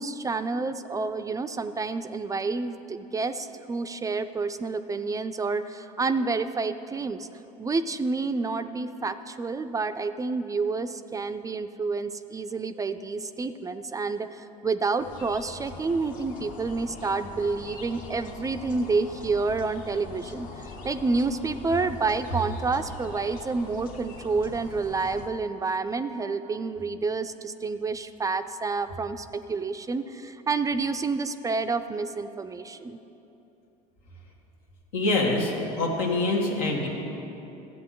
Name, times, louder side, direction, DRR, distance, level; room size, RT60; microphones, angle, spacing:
voice 1, 0.0-7.3 7.6-33.0, right 4 dB, 20° right, 10 dB, 0.3 m, -29 dB
sound 1, 15.0-25.3, left 3 dB, 55° left, 1.1 m, -42 dB
voice 2, 34.9-36.9, left 2 dB, 85° left, -1 dB, 1.6 m, -25 dB
13.0 x 7.9 x 3.8 m, 3.0 s
supercardioid pair, 90°, 17 cm